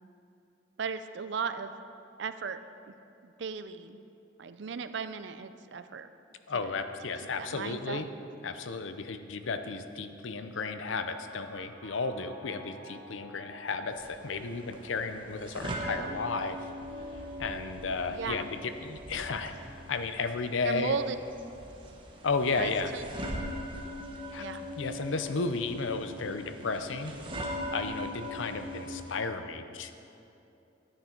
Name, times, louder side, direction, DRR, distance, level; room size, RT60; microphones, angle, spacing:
voice 1, 0.8-1.7 2.2-2.6 2.9-3.0 3.2-4.0 4.4-6.1 6.5-6.8 7.4-8.0 18.1-18.5 20.6-21.2 22.5-23.1 24.4-24.7, right 5 dB, 65° right, 11 dB, 0.4 m, -36 dB
voice 2, 6.5-8.1 8.4-16.6 17.4-21.0 22.2-22.9 24.3-24.4 24.8-27.2 27.5-29.9, left 4 dB, 75° left, 9 dB, 0.6 m, -33 dB
sound 1, 10.5-23.8 24.6-25.4, right 1 dB, 45° right, 1.8 m, -54 dB
sound 2, 13.9-29.2, equal, 25° right, 0.9 m, -41 dB
11.5 x 9.7 x 4.4 m, 2.8 s
head